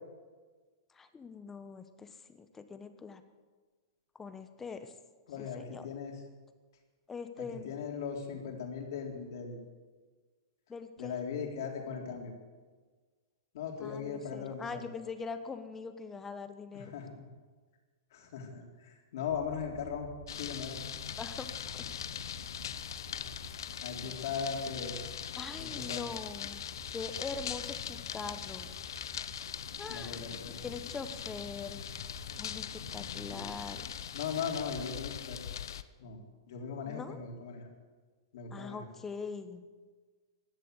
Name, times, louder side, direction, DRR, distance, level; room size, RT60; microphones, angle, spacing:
voice 1, 0.9-3.2 4.1-4.9 5.4-5.8 7.1-7.7 10.7-11.1 13.8-16.9 21.1-21.5 21.7-21.8 25.4-26.6 26.9-28.7 29.8-30.2 30.6-31.8 32.4-32.7 32.9-33.8 36.8-37.2 38.5-39.6, left 5 dB, 15° left, 9 dB, 1.2 m, -42 dB
voice 2, 5.3-6.2 7.4-9.6 11.0-12.3 13.5-14.8 16.7-17.2 18.1-20.1 20.4-20.8 23.4-25.0 25.6-26.0 29.4-29.5 29.9-30.6 33.3-33.5 34.1-35.4 36.0-36.2 36.5-37.7 38.3-38.9, left 6 dB, 65° left, 1 dB, 3.9 m, -39 dB
sound 1, 19.2-34.0, right 3 dB, 30° right, 3.9 m, -52 dB
sound 2, 20.3-35.8, left 9 dB, 80° left, 0.8 m, -41 dB
16.5 x 11.0 x 8.0 m, 1.4 s
hypercardioid pair, 145°, 2 cm